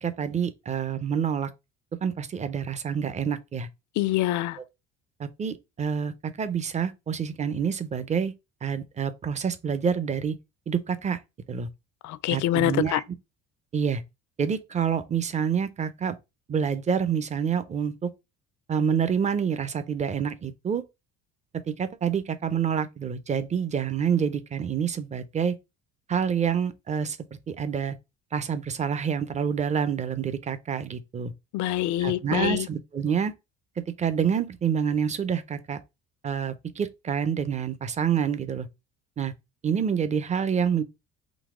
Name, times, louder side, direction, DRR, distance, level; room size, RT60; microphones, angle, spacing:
voice 1, 0.0-1.5 2.0-3.7 5.2-8.3 8.6-10.4 10.7-11.2 11.5-11.7 12.3-13.0 13.7-14.0 14.4-16.2 16.5-18.1 18.7-20.8 21.7-25.5 26.1-27.2 27.5-28.0 28.3-31.3 32.0-33.3 33.8-35.8 36.2-38.7 39.2-39.3 39.6-40.8, right 7 dB, 25° right, 0.5 m, -27 dB
voice 2, 4.0-4.6 12.0-13.0 31.5-32.7, left 14 dB, 70° left, 0.5 m, -25 dB
3.9 x 2.8 x 4.7 m
cardioid pair, 125°, 30 cm